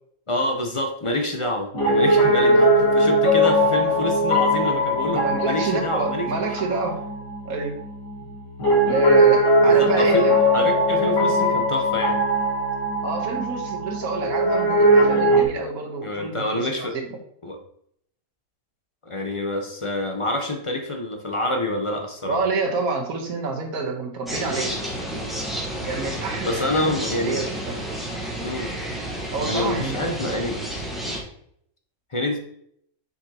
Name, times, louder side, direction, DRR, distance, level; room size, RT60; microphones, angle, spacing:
voice 1, 0.3-6.6 9.6-10.3 10.5-12.2 16.0-17.0 17.4-17.6 19.0-22.4 26.4-27.4 28.4-28.7 29.4-30.6 32.1-32.4, left 1 dB, 35° left, 3 dB, 0.5 m, -27 dB
Piano, 1.7-15.4, equal, 90° left, 2.2 m, -20 dB
voice 2, 2.0-2.7 5.1-7.0 7.4-7.8 8.9-10.4 13.0-16.9 22.2-24.7 25.8-26.9 27.2-27.8 29.3-30.0, right 3 dB, 75° right, 1 dB, 1.6 m, -28 dB
sound 1, 24.3-31.2, right 1 dB, ahead, 1.1 m, -30 dB
6.8 x 5.0 x 2.9 m, 0.68 s
omnidirectional pair, 1.5 m